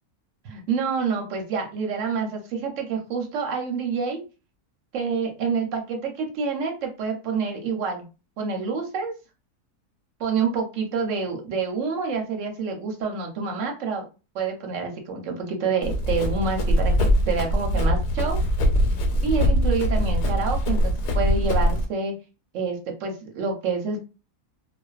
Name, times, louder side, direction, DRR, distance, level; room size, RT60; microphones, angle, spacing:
voice 1, 0.4-4.2 4.9-8.1 8.4-9.1 10.2-14.0 14.3-18.4 19.2-22.1 22.5-24.0, right 5 dB, 65° right, 3 dB, 0.8 m, -27 dB
Run, 15.8-21.8, equal, 85° left, 1.1 m, -22 dB
2.4 x 2.2 x 2.3 m, 0.32 s
omnidirectional pair, 1.7 m